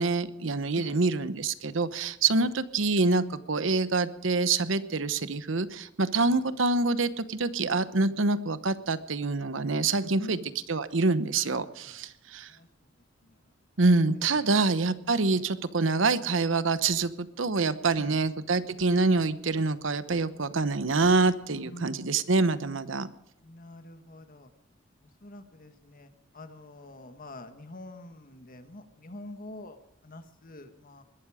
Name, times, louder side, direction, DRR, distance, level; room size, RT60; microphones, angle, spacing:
voice 1, 0.0-10.4 10.7-12.5 13.8-23.1, right 3 dB, 75° right, 14 dB, 1.0 m, -26 dB
voice 2, 10.2-10.6 11.8-12.1 12.4-12.9 13.2-13.4 14.2-14.5 15.3-15.5 17.9-18.2 21.6-22.1 23.4-24.5 25.0-31.0, left 1 dB, 45° left, 9 dB, 1.6 m, -46 dB
21.0 x 12.5 x 5.0 m, 0.83 s
head